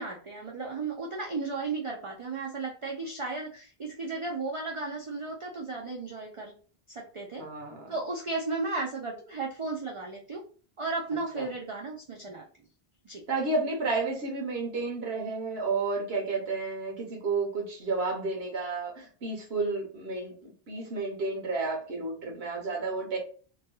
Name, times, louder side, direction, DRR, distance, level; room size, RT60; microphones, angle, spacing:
voice 1, 0.0-6.6 6.9-7.4 7.9-10.4 10.8-12.5 13.0-13.2, right 3 dB, 50° right, 0 dB, 0.4 m, -34 dB
voice 2, 7.4-7.9 11.3-11.5 13.3-23.2, right 3 dB, 85° right, 1 dB, 1.2 m, -31 dB
3.0 x 2.2 x 2.9 m, 0.41 s
omnidirectional pair, 1.0 m